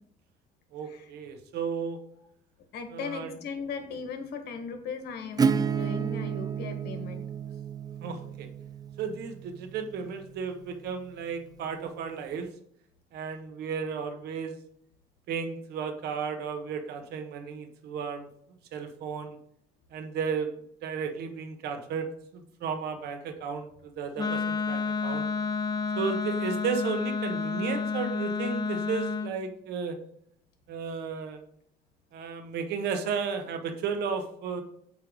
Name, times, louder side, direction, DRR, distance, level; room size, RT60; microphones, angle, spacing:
voice 1, 0.7-2.0 2.9-3.3 8.0-8.5 9.0-12.5 13.1-14.6 15.3-18.3 18.7-19.4 19.9-20.5 20.8-25.2 25.9-30.0 30.7-31.4 32.1-34.6, right 6 dB, 75° right, 7 dB, 1.3 m, -34 dB
voice 2, 2.7-7.2, left 5 dB, 75° left, 6 dB, 1.7 m, -38 dB
Acoustic guitar / Strum, 5.4-10.9, right 6 dB, 25° right, 0.4 m, -31 dB
Wind instrument woodwind instrument, 24.2-29.3, left 4 dB, 20° left, 1.0 m, -30 dB
8.3 x 3.4 x 6.4 m, 0.67 s
cardioid pair, 110°, 17 cm